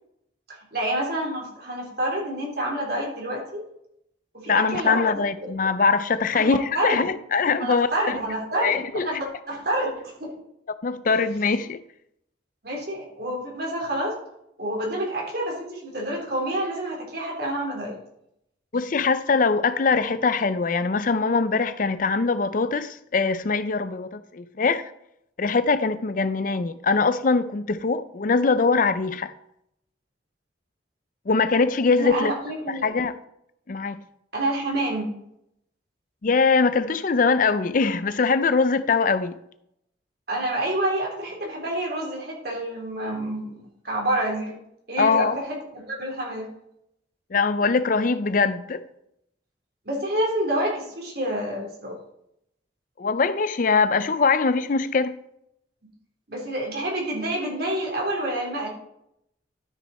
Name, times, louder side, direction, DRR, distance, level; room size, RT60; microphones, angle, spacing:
voice 1, 0.7-3.6 4.3-5.1 5.4-5.5 6.3-7.0 7.6-10.3 11.0-11.2 12.6-14.1 14.6-17.9 32.0-32.9 34.3-35.1 40.3-44.5 44.9-46.5 49.8-52.0 56.3-58.7, right 1 dB, 60° right, 3.6 m, -28 dB
voice 2, 4.5-8.2 8.6-9.2 10.8-11.8 18.7-24.9 25.4-29.3 31.3-32.3 32.7-33.2 33.7-34.0 36.2-39.4 45.0-45.4 47.3-48.8 53.0-55.1, left 4 dB, 45° left, 0.5 m, -22 dB
12.5 x 6.5 x 4.3 m
head